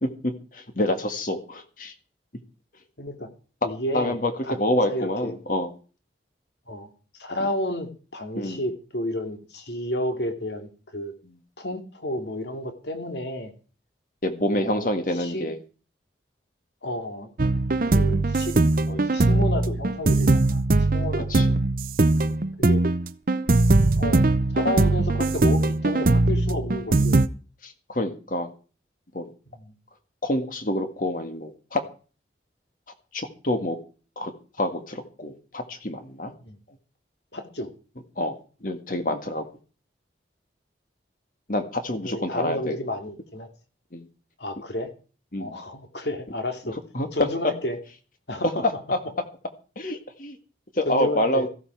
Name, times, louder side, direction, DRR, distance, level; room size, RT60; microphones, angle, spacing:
voice 1, 0.0-1.9 3.9-5.7 8.4-8.6 14.2-15.6 21.3-21.5 22.1-22.4 27.6-28.5 29.1-29.3 30.2-31.8 33.1-33.8 34.2-34.3 34.6-36.3 38.2-38.4 38.6-39.5 41.5-42.8 43.9-44.0 45.3-45.5 46.9-47.1 48.6-48.7 49.8-50.4 50.8-51.5, left 1 dB, 45° left, 7 dB, 1.7 m, -27 dB
voice 2, 3.0-3.3 3.6-4.2 4.4-4.6 4.9-5.4 6.7-6.9 7.2-11.1 11.6-13.5 14.5-14.9 15.2-15.4 16.8-17.3 17.9-18.5 18.8-21.5 22.6-22.8 24.0-27.2 29.5-29.7 36.4-36.6 37.3-37.7 42.0-43.5 44.4-44.9 45.4-46.8 47.1-47.8 48.3-48.7 50.9-51.5, left 1 dB, 65° left, 5 dB, 2.6 m, -31 dB
sound 1, 17.4-27.3, right 2 dB, 50° right, 0.7 m, -21 dB
15.0 x 12.5 x 4.7 m, 0.37 s
head